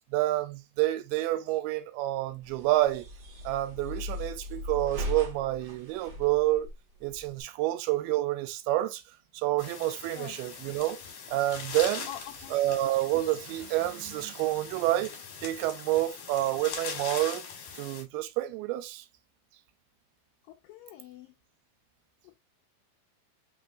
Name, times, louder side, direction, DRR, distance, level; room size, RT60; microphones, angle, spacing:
voice 1, 0.1-3.1 3.4-6.7 7.0-9.0 9.3-11.0 11.3-12.1 12.5-15.1 15.4-17.4 17.8-19.1, right 16 dB, 85° right, 2.6 m, -28 dB
sound 1, 2.4-7.4, left 1 dB, 55° right, 1.1 m, -39 dB
sound 2, 9.6-18.0, left 6 dB, 60° left, 2.4 m, -41 dB
voice 2, 12.1-12.6 20.5-21.3, left 13 dB, 80° left, 2.0 m, -44 dB
5.5 x 3.3 x 2.4 m
omnidirectional pair, 4.4 m